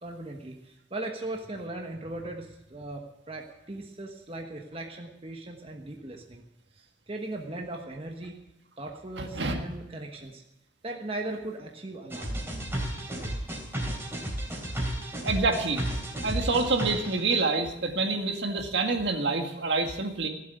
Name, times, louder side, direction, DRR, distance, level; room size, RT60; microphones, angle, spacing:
voice 1, 0.0-6.4 6.8-8.3 8.8-10.4 10.8-12.4 13.1-13.4, right 2 dB, 30° right, 1 dB, 1.3 m, -38 dB
voice 2, 9.2-9.6 15.2-15.8 16.2-20.3, right 3 dB, 65° right, 4 dB, 1.9 m, -27 dB
sound 1, 12.1-17.4, right 1 dB, 15° right, 3.3 m, -33 dB
16.5 x 7.7 x 9.3 m, 0.92 s
head